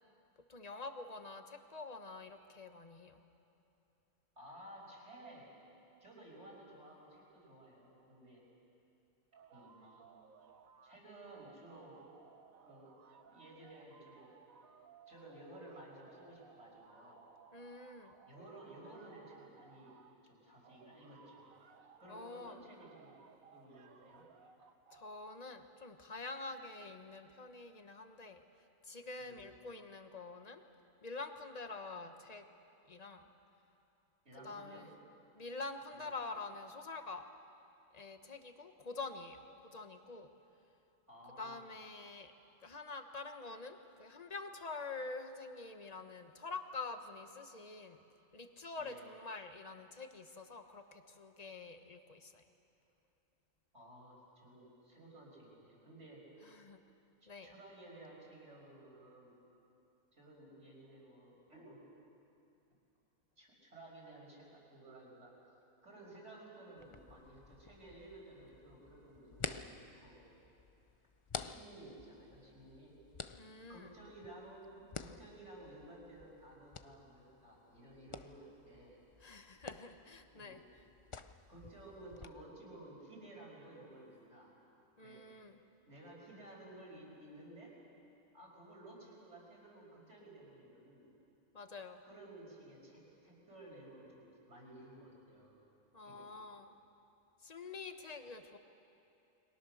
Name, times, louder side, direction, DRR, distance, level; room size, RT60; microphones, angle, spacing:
voice 1, 0.5-3.2 17.5-18.2 22.1-22.6 24.9-28.4 28.8-30.6 31.0-32.4 32.9-33.3 34.4-34.9 35.3-37.3 37.9-40.3 41.4-42.3 42.6-48.0 48.3-52.4 56.4-56.8 57.3-57.5 73.4-73.9 79.2-80.6 85.0-85.6 91.5-92.0 95.9-96.7 97.4-98.6, left 3 dB, 30° left, 7 dB, 1.2 m, -47 dB
voice 2, 4.4-5.5 6.0-8.4 9.5-10.0 10.8-12.1 12.6-12.9 13.3-14.3 15.1-17.2 18.3-21.6 22.0-23.2 23.5-24.2 29.2-29.6 34.2-34.9 35.9-36.1 41.1-41.7 48.8-49.0 53.7-56.3 57.2-59.4 60.1-61.8 63.4-65.3 65.8-70.3 71.4-73.0 73.7-79.0 80.3-80.7 81.5-84.5 85.0-85.3 85.9-87.8 88.3-91.1 92.0-95.6 96.0-96.3, right 1 dB, 50° right, -3 dB, 5.9 m, -55 dB
sound 1, 9.3-11.0 11.3-20.2 20.6-22.4 22.8-25.1, right 6 dB, 70° right, 1.5 m, -61 dB
sound 2, 66.8-82.3, left 5 dB, 55° left, 0.3 m, -50 dB
29.5 x 23.0 x 6.5 m, 2.8 s
omnidirectional pair, 1.5 m